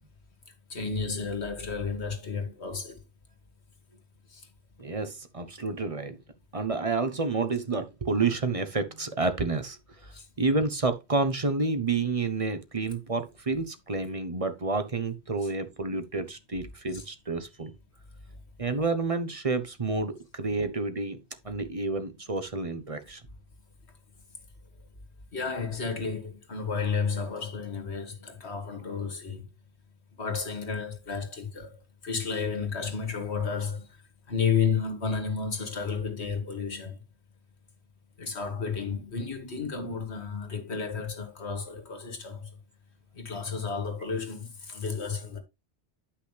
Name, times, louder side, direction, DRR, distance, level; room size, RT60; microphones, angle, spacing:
voice 1, 0.7-3.0 4.3-4.4 10.1-10.3 15.4-15.5 16.9-17.0 25.3-29.4 30.1-33.9 34.3-37.0 38.2-42.5 43.1-45.4, left 5 dB, 85° left, 2.1 m, -32 dB
voice 2, 4.8-6.2 6.5-17.7 18.6-21.2 21.4-23.2, right 3 dB, 35° right, 1.0 m, -29 dB
9.9 x 5.8 x 3.3 m
omnidirectional pair, 1.1 m